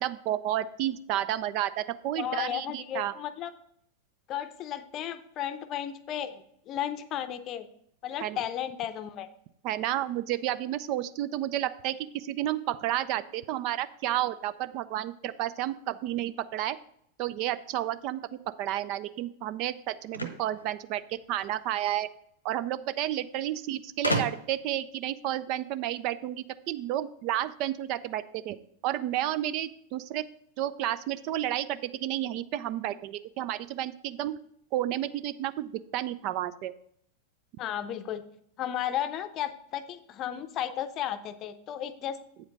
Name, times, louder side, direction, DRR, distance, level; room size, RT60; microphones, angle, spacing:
voice 1, 0.0-3.1 8.2-8.4 9.6-16.8 17.2-22.1 22.4-28.6 28.8-30.2 30.6-34.4 34.7-36.7, right 13 dB, 40° right, 14 dB, 0.4 m, -31 dB
voice 2, 2.2-3.5 4.3-7.7 8.0-9.3 37.6-38.2 38.6-42.2, left 10 dB, 35° left, 11 dB, 0.6 m, -34 dB
sound 1, 20.1-21.5 22.6-22.7 23.0-23.1 24.0-24.7, equal, 85° left, 1.0 m, -32 dB
8.3 x 5.0 x 5.2 m, 0.69 s
figure-of-eight pair, 90°, 0 cm